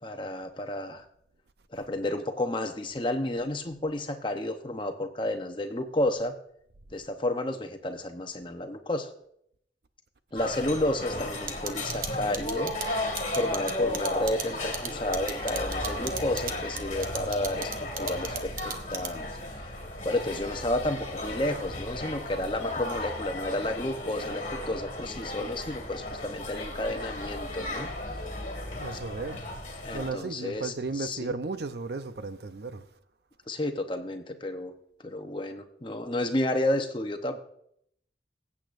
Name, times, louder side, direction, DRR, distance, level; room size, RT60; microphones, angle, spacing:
voice 1, 0.0-1.0 1.7-6.3 6.9-9.1 10.3-13.0 13.4-17.7 18.0-19.3 20.0-28.2 29.8-31.3 33.5-34.7 35.0-37.4, left 1 dB, 25° left, 0.8 m, -31 dB
sound 1, 10.4-30.1, left 1 dB, 45° left, 2.0 m, -35 dB
sound 2, 11.5-19.4, right 7 dB, 50° right, 0.9 m, -35 dB
voice 2, 28.7-29.4 29.9-32.8, right 3 dB, 65° right, 0.6 m, -34 dB
20.5 x 8.5 x 2.6 m
head